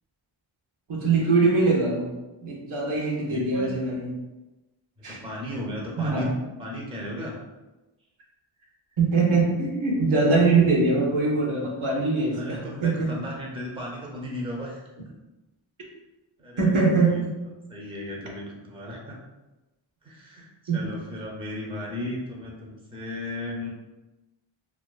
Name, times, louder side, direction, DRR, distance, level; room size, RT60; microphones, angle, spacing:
voice 1, 0.9-2.1 2.4-4.1 5.0-5.2 6.0-6.3 9.0-13.2 16.6-17.3 20.7-20.8, right 3 dB, 75° right, -2 dB, 0.7 m, -22 dB
voice 2, 3.3-3.7 5.1-7.4 12.3-14.9 16.4-17.2 17.7-19.2 20.0-23.7, left 1 dB, 10° right, -2 dB, 0.5 m, -35 dB
2.4 x 2.3 x 2.2 m, 1.1 s
wide cardioid pair, 45°, 50 cm